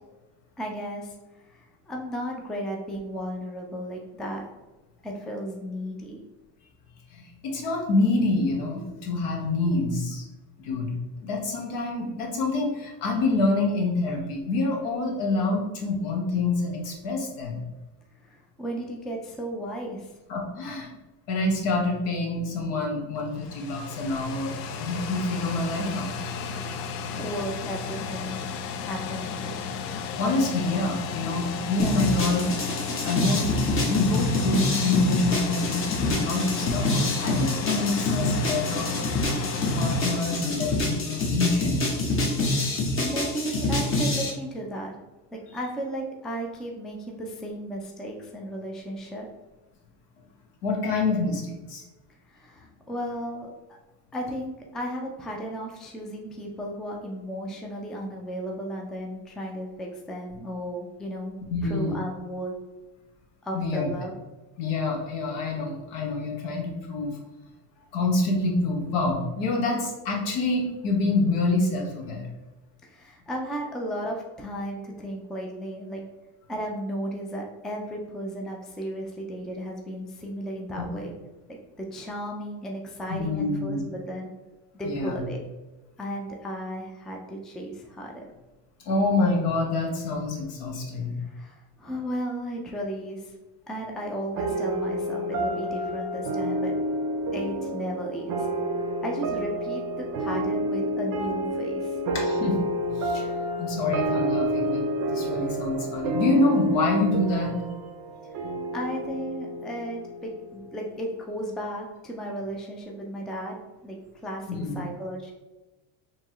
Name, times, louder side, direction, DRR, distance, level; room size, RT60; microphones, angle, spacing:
voice 1, 0.6-1.1 1.4-4.5 5.0-6.2 18.2-20.2 26.9-28.5 28.9-29.6 42.4-45.0 45.3-49.3 52.3-53.5 54.1-61.4 61.6-62.5 63.4-64.1 72.8-76.0 76.5-81.1 81.5-84.3 84.8-85.4 86.0-88.2 91.2-93.3 93.7-96.7 97.3-98.5 99.0-102.0 108.7-114.0 114.2-115.3, right 1 dB, ahead, 0 dB, 0.4 m, -35 dB
voice 2, 7.1-10.2 10.6-10.9 11.2-17.6 20.3-20.9 21.3-26.2 30.1-32.5 33.0-33.5 33.8-39.0 39.8-41.9 50.6-51.8 61.5-62.0 63.5-63.9 64.6-67.2 67.9-72.3 80.8-80.9 83.1-83.9 84.8-85.2 88.8-91.1 102.1-102.6 103.0-103.3 103.6-107.5 114.5-114.9, left 2 dB, 65° left, 1 dB, 1.3 m, -26 dB
sound 1, 23.1-41.3, left 5 dB, 85° left, 0.6 m, -34 dB
sound 2, 31.8-44.3, left 2 dB, 30° left, 0.9 m, -26 dB
sound 3, 94.4-111.2, equal, 45° right, 0.6 m, -29 dB
4.4 x 3.1 x 3.0 m, 1.1 s
supercardioid pair, 110°, 45 cm